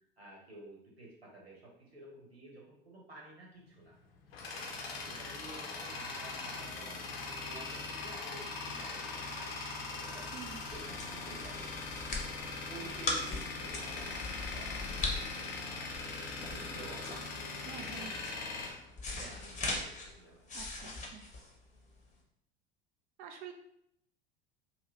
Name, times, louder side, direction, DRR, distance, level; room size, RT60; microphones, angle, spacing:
voice 1, 0.0-3.9 4.7-10.3 10.7-12.0 12.4-15.5 15.8-18.1 19.1-20.5, right 2 dB, 85° right, -3 dB, 1.0 m, -52 dB
Tools, 3.9-19.7, left 3 dB, 70° left, 0.8 m, -41 dB
sound 1, 10.3-22.1, left 2 dB, 25° left, 0.8 m, -40 dB
voice 2, 10.3-10.6 17.6-18.1 20.5-21.2 23.2-23.5, right 8 dB, 30° right, 5 dB, 0.3 m, -48 dB
2.7 x 2.6 x 3.2 m, 0.74 s
figure-of-eight pair, 75°, 30 cm